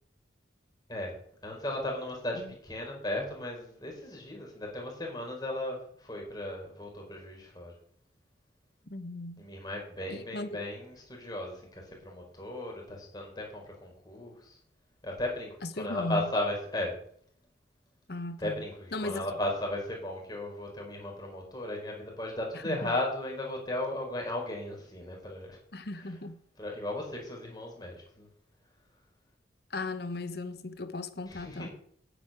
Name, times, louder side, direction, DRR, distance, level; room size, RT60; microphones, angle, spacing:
voice 1, 1.4-7.7 9.4-14.6 15.0-17.0 18.4-25.6 26.0-26.1 26.6-28.3 31.3-31.7, left 1 dB, 20° left, 4.3 m, -36 dB
voice 2, 8.9-9.4 10.1-10.7 15.6-16.3 18.1-18.6 18.9-19.3 22.5-22.9 25.7-26.4 29.7-31.7, left 2 dB, 55° left, 1.0 m, -37 dB
9.2 x 8.5 x 8.8 m
head